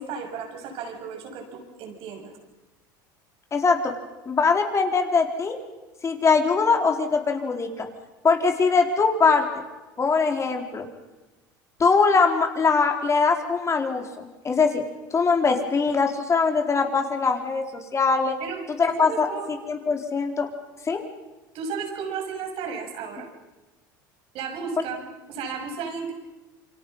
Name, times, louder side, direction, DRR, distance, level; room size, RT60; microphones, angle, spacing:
voice 1, 0.0-2.3 18.4-19.5 21.5-23.3 24.3-26.1, right 6 dB, 60° right, 3 dB, 6.6 m, -34 dB
voice 2, 3.5-3.9 4.3-5.6 6.0-7.9 8.2-9.4 10.0-10.9 11.8-14.8 15.1-17.6 17.9-18.4 18.8-19.3 19.7-20.5 20.9-21.0, left 4 dB, 30° left, 4 dB, 4.3 m, -22 dB
28.0 x 25.0 x 5.7 m, 1.1 s
hypercardioid pair, 85°, 11 cm